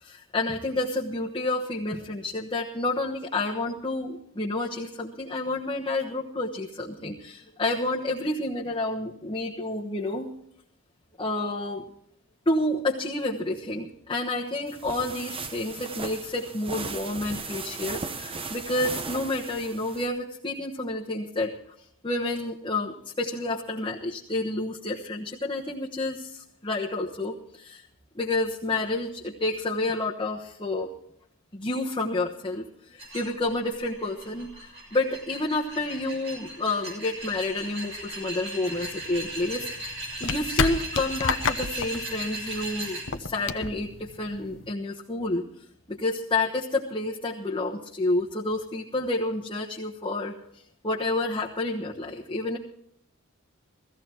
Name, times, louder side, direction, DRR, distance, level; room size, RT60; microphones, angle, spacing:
voice 1, 0.0-10.3 11.2-11.9 12.5-21.5 22.0-27.8 28.1-30.9 31.5-39.9 40.2-45.4 45.9-50.3 50.8-52.6, left 2 dB, 25° left, -3 dB, 1.2 m, -29 dB
sound 1, 14.7-20.1, right 4 dB, 25° right, 0.9 m, -37 dB
sound 2, 33.0-43.0, right 1 dB, 60° right, 6.2 m, -37 dB
sound 3, 38.7-44.7, left 5 dB, 65° left, 0.9 m, -31 dB
16.5 x 15.5 x 4.4 m, 0.69 s
head